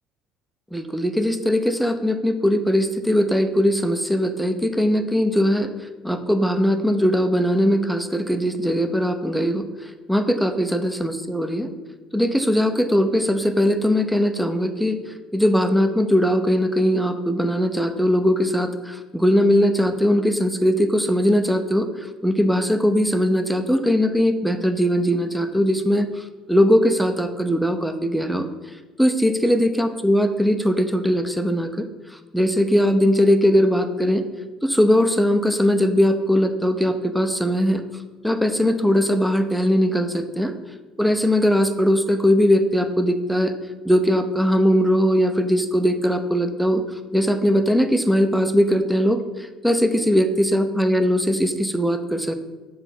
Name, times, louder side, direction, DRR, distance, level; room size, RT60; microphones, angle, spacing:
voice 1, 0.7-11.7 12.1-15.0 15.3-21.9 22.2-28.5 29.0-31.9 32.3-34.2 34.6-37.8 38.2-40.5 41.0-43.5 43.8-46.8 47.1-52.3, equal, ahead, 7 dB, 0.7 m, -20 dB
7.0 x 3.4 x 6.0 m, 1.3 s
supercardioid pair, 75°, 0 cm